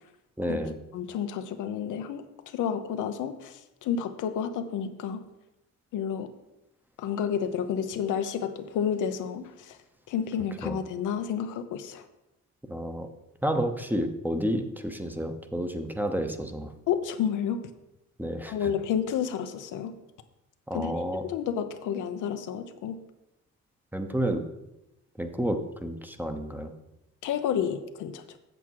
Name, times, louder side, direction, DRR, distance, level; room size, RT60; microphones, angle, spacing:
voice 1, 0.4-0.8 10.6-10.8 12.7-13.1 13.4-16.7 18.2-18.7 20.7-21.2 23.9-24.4 25.2-26.7, equal, 5° right, 6 dB, 0.9 m, -30 dB
voice 2, 0.9-2.2 2.5-5.2 5.9-6.3 7.0-9.8 10.1-12.0 16.9-17.6 18.5-19.9 20.7-20.9 21.2-23.0 27.2-28.2, left 8 dB, 85° left, 8 dB, 0.8 m, -30 dB
8.0 x 7.1 x 4.7 m, 0.91 s
cardioid pair, 90°, 30 cm